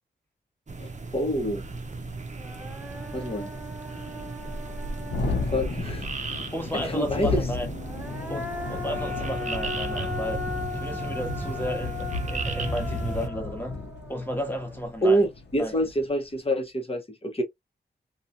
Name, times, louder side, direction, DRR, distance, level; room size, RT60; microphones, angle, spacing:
sound 1, 0.7-13.3, right 3 dB, 40° right, 0.7 m, -36 dB
voice 1, 0.8-1.6 3.1-3.5 5.2-6.1 6.8-7.4 15.0-17.4, right 1 dB, 30° left, 1.1 m, -27 dB
Thunderstorm, 1.7-1.8 2.1-2.2 2.5-16.1, left 3 dB, 65° left, 0.9 m, -35 dB
Human voice, 1.9-2.0 2.4-6.0 7.7-15.0, left 3 dB, 10° right, 0.9 m, -38 dB
voice 2, 6.5-7.7 8.3-10.4 10.7-13.8 14.1-15.3 15.6-15.7, equal, 10° left, 1.3 m, -33 dB
2.7 x 2.4 x 2.5 m
cardioid pair, 50°, 18 cm